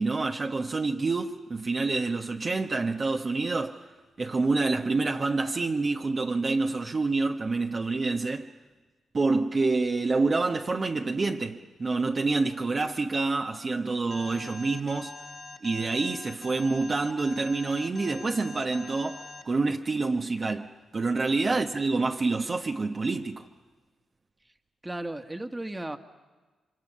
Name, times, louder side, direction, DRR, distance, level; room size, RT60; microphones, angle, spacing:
voice 1, 0.0-3.8 4.2-8.5 9.1-15.1 15.6-23.5, right 3 dB, 45° right, 1.2 m, -27 dB
Alarm, 14.1-19.4, left 4 dB, 50° left, 2.1 m, -44 dB
voice 2, 24.8-26.0, right 1 dB, 20° right, 1.8 m, -35 dB
29.0 x 25.5 x 5.7 m
hypercardioid pair, 45°, 0 cm